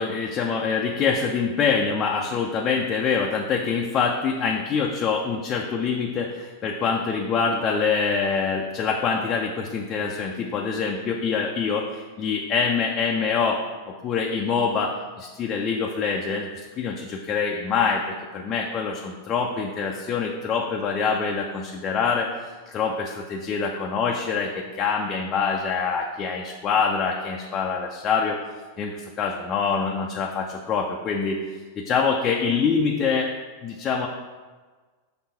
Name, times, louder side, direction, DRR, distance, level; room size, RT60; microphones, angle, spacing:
voice 1, 0.0-13.6 14.0-16.5 16.8-22.3 22.7-28.4 28.8-31.4 31.8-33.3 33.6-34.1, left 5 dB, 30° left, 0 dB, 0.6 m, -25 dB
6.3 x 3.3 x 5.6 m, 1.4 s
figure-of-eight pair, 90°, 0 cm